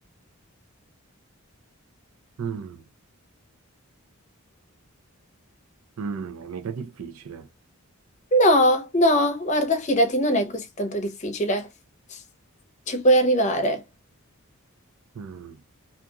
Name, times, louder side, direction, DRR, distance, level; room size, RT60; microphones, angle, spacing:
voice 1, 2.4-2.9 6.0-7.5 15.1-15.6, right 6 dB, 85° right, 0.4 m, -34 dB
voice 2, 8.3-11.7 12.1-12.2 12.9-13.8, equal, 35° left, 0.7 m, -21 dB
2.8 x 2.5 x 2.3 m
head